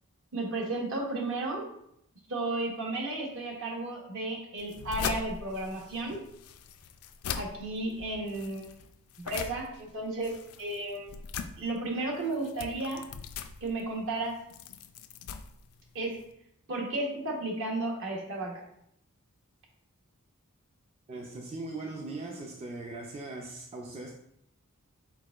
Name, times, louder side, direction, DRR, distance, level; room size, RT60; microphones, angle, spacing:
voice 1, 0.3-1.7 2.3-6.2 7.3-8.7 9.2-11.2 11.6-13.0 13.6-14.3 15.9-16.2 16.7-18.6, right 2 dB, 60° right, 0 dB, 1.0 m, -33 dB
sound 1, 4.6-16.3, left 6 dB, 70° left, 0.3 m, -41 dB
voice 2, 21.1-24.1, right 2 dB, 25° right, 0 dB, 0.4 m, -39 dB
4.6 x 4.3 x 2.4 m, 0.76 s
head